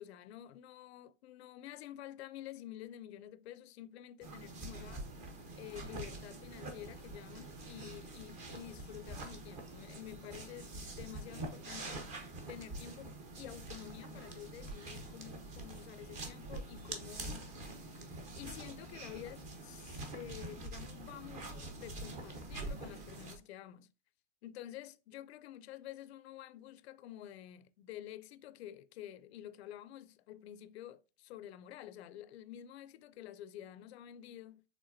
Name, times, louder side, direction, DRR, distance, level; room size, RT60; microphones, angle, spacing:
voice 1, 0.0-5.0 5.6-12.0 12.5-17.5 17.9-18.0 18.3-23.9 24.4-34.6, left 12 dB, 60° left, 0.5 m, -50 dB
sound 1, 4.2-23.4, right 2 dB, 20° right, 0.6 m, -46 dB
5.1 x 3.5 x 2.6 m
supercardioid pair, 150°, 36 cm